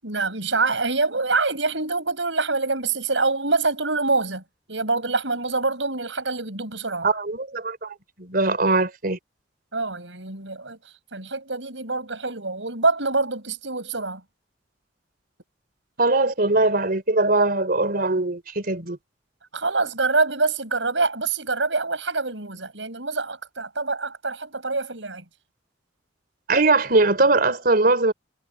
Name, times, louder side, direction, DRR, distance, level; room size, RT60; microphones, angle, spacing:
voice 1, 0.0-4.4 4.7-7.1 9.7-10.8 11.1-14.2 19.5-25.2, right 3 dB, 75° right, 6.7 m, -25 dB
voice 2, 7.0-9.2 16.0-19.0 26.5-28.1, right 2 dB, 50° right, 3.9 m, -21 dB
head